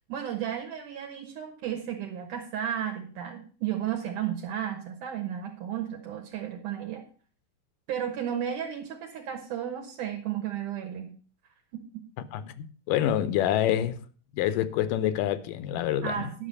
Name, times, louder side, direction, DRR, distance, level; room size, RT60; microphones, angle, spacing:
voice 1, 0.1-7.0 7.9-11.2 11.7-12.0 16.0-16.5, right 9 dB, 70° right, 2.7 m, -33 dB
voice 2, 12.3-14.0 14.3-16.3, left 11 dB, 85° left, 2.3 m, -27 dB
10.5 x 6.0 x 6.6 m
omnidirectional pair, 3.8 m